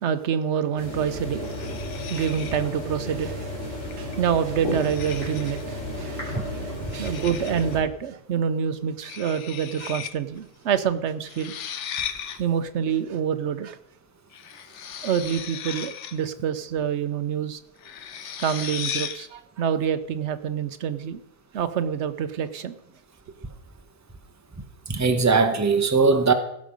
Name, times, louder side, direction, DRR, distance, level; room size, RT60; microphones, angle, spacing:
voice 1, 0.0-11.5 12.4-13.8 15.0-17.6 18.2-21.2 21.5-22.7, right 8 dB, 75° right, 1.0 m, -27 dB
sound 1, 0.8-7.8, equal, 55° left, 4.1 m, -33 dB
sound 2, 1.4-2.7 3.9-4.2 4.7-5.7 6.9-7.7 9.0-10.1 10.4-10.5 11.3-12.4 14.3-16.3 17.8-19.3, left 8 dB, 85° left, 1.1 m, -36 dB
voice 2, 24.9-26.3, right 4 dB, 15° right, 0.9 m, -20 dB
16.0 x 6.4 x 5.1 m
omnidirectional pair, 1.2 m